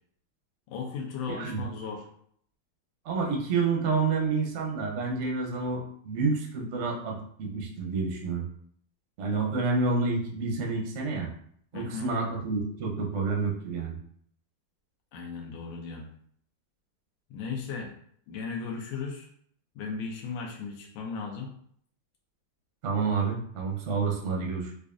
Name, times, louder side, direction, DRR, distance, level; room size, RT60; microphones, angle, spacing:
voice 1, 0.7-2.0 11.7-12.1 15.1-16.0 17.3-17.9 18.3-19.3 19.8-21.5, left 5 dB, 80° left, -1 dB, 1.4 m, -36 dB
voice 2, 1.3-1.6 3.0-8.4 9.2-11.3 11.7-14.0 22.8-24.7, right 4 dB, 60° right, -1 dB, 0.8 m, -29 dB
4.9 x 2.4 x 2.5 m, 0.64 s
omnidirectional pair, 2.2 m